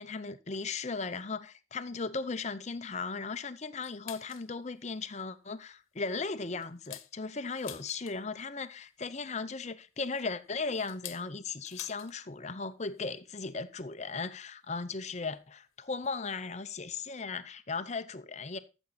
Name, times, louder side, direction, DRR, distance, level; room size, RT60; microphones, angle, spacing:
voice 1, 0.0-18.6, left 4 dB, 35° left, 0.6 m, -37 dB
sound 1, 3.8-4.5 4.9-5.0 5.4-5.7 6.1-8.4 9.6-12.2 12.5-12.6 12.9-13.2 14.1-14.2 15.1-15.2 16.0-16.2 16.5-16.6 16.8-17.0, left 13 dB, 90° left, 1.0 m, -49 dB
13.5 x 7.1 x 4.0 m
head